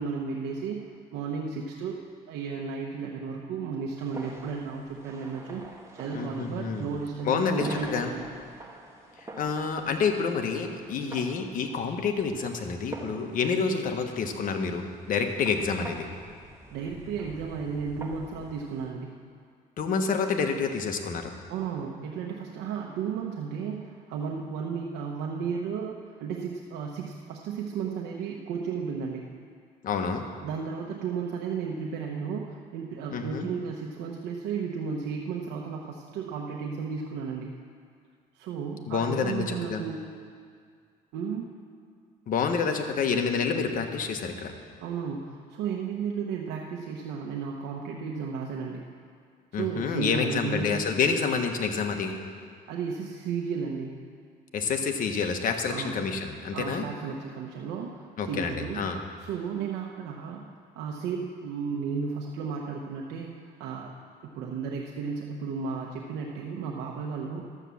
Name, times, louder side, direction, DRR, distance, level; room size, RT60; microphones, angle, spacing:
voice 1, 0.0-2.0 2.3-8.3 16.7-19.2 21.5-29.3 30.4-37.5 38.3-40.0 41.1-41.5 44.8-48.8 49.5-50.9 52.7-54.0 55.7-56.0 56.5-58.8 59.2-64.0 64.2-67.4, right 6 dB, 85° right, -1 dB, 0.9 m, -34 dB
sound 1, 4.0-18.9, right 2 dB, 15° right, 1.6 m, -46 dB
voice 2, 6.1-6.9 7.2-8.1 9.2-16.1 19.8-21.3 29.8-30.2 33.1-33.5 38.9-39.8 42.3-44.5 49.5-52.2 54.5-56.8 58.2-59.0, left 5 dB, 55° left, 5 dB, 1.2 m, -28 dB
12.0 x 7.4 x 7.0 m, 2.1 s
cardioid pair, 110°, 17 cm